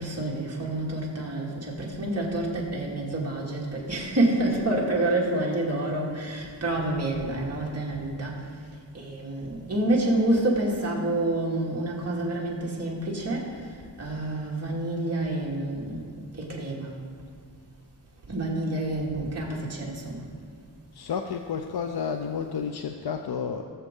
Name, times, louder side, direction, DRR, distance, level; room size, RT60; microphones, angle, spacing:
voice 1, 0.0-8.4 8.9-13.5 14.0-16.9 18.3-20.2, right 1 dB, 35° right, -4 dB, 2.4 m, -28 dB
voice 2, 20.9-23.6, left 6 dB, 60° left, 5 dB, 0.6 m, -31 dB
19.0 x 7.0 x 3.8 m, 2.1 s
wide cardioid pair, 135°, 43 cm